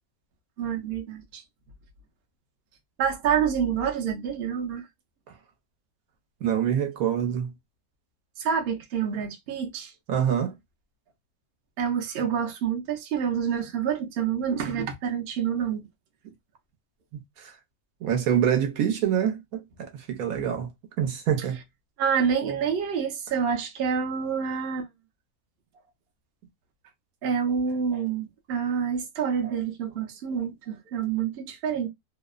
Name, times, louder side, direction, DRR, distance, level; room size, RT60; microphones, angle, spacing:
voice 1, 0.6-1.4 3.0-4.9 8.4-9.9 11.8-15.9 22.0-24.9 27.2-31.9, right 7 dB, 55° right, 0.7 m, -27 dB
voice 2, 6.4-7.5 10.1-10.5 17.1-17.5 18.0-20.7 21.0-21.6, right 9 dB, 75° right, 1.1 m, -26 dB
2.8 x 2.0 x 2.3 m
omnidirectional pair, 1.5 m